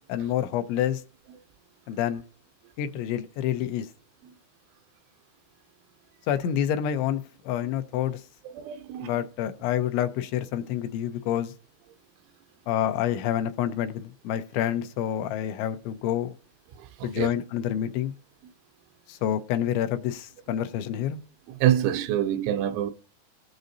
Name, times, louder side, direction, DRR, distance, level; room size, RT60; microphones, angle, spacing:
voice 1, 0.1-1.0 1.9-2.2 2.8-3.9 6.3-8.2 9.0-11.5 12.7-16.4 17.0-18.1 19.1-21.2, left 10 dB, 90° left, 3.2 m, -28 dB
voice 2, 8.5-9.1 17.0-17.3 21.6-22.9, right 11 dB, 90° right, 3.1 m, -25 dB
19.0 x 7.8 x 2.7 m
omnidirectional pair, 5.2 m